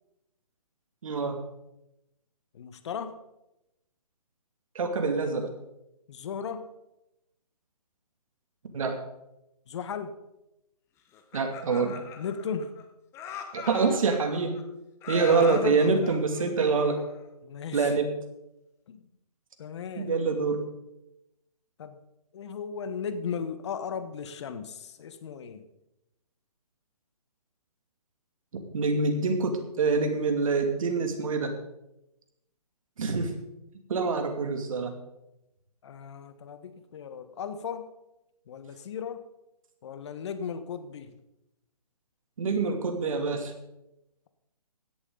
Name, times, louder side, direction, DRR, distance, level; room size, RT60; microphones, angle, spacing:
voice 1, 1.0-1.4 4.7-5.5 8.7-9.0 11.3-12.0 13.5-14.6 15.1-17.0 17.7-18.2 20.0-20.7 28.7-31.5 33.0-33.4 33.9-34.9 42.4-43.5, right 4 dB, 55° right, 4 dB, 2.6 m, -26 dB
voice 2, 2.5-3.2 6.1-6.6 9.7-10.2 12.2-12.7 15.3-15.8 17.4-18.0 18.9-19.0 19.6-20.1 21.8-22.0 22.3-25.6 35.8-37.9 38.5-39.2 39.8-41.2, left 6 dB, 45° left, 10 dB, 1.4 m, -36 dB
Laughter, 11.1-12.8 13.1-14.6 15.0-17.3, left 6 dB, 15° left, 1.0 m, -40 dB
16.5 x 11.0 x 3.9 m, 0.90 s
hypercardioid pair, 150°, 20 cm